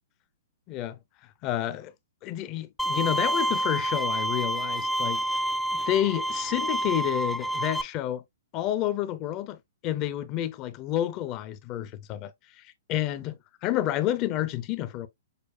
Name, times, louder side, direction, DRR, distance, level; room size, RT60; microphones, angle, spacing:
voice 1, 1.4-1.9 2.2-5.2 5.7-8.2 8.5-9.6 9.8-13.4 13.6-15.1, left 12 dB, 35° left, 0.7 m, -29 dB
Bowed string instrument, 2.8-7.8, right 1 dB, 5° left, 0.4 m, -28 dB
6.7 x 2.2 x 2.6 m
hypercardioid pair, 125°, 0 cm